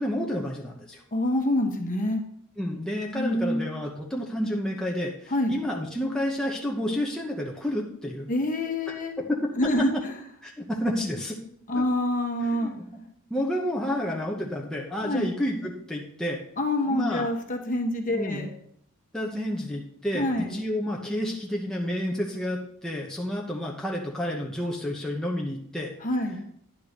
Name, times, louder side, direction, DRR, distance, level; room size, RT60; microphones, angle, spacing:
voice 1, 0.0-1.0 2.6-8.3 10.4-11.4 11.7-11.8 12.5-12.8 13.3-16.4 16.9-17.3 18.1-18.5 19.1-25.9, equal, 5° left, -2 dB, 0.9 m, -30 dB
voice 2, 1.1-2.2 3.1-3.7 5.3-5.5 8.3-9.2 9.6-9.9 11.7-12.7 15.0-15.3 16.6-18.5 20.1-20.6 26.0-26.4, left 1 dB, 35° left, 3 dB, 1.2 m, -26 dB
10.0 x 3.8 x 6.7 m, 0.68 s
head